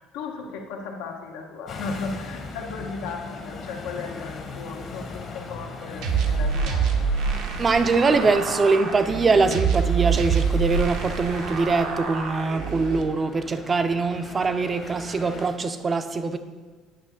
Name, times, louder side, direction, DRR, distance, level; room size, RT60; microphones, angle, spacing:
voice 1, 0.0-6.9, left 4 dB, 90° left, 0.9 m, -36 dB
sound 1, 1.7-15.5, left 3 dB, 40° left, 0.9 m, -39 dB
sound 2, 6.0-13.0, right 6 dB, 75° right, 0.8 m, -26 dB
voice 2, 7.6-16.4, right 4 dB, 25° right, 0.4 m, -23 dB
8.4 x 3.3 x 6.3 m
cardioid pair, 125°, 0 cm